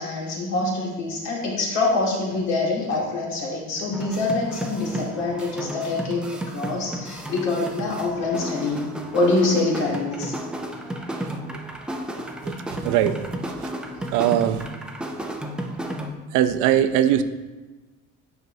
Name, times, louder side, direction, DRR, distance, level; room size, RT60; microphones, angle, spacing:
voice 1, 0.0-10.4, left 2 dB, 60° left, -2 dB, 2.0 m, -25 dB
sound 1, 3.9-16.1, right 1 dB, 5° right, 0.4 m, -33 dB
voice 2, 12.8-13.2 14.1-14.7 16.3-17.2, right 11 dB, 80° right, 10 dB, 0.6 m, -20 dB
9.5 x 5.2 x 2.7 m, 1.2 s
cardioid pair, 155°, 30 cm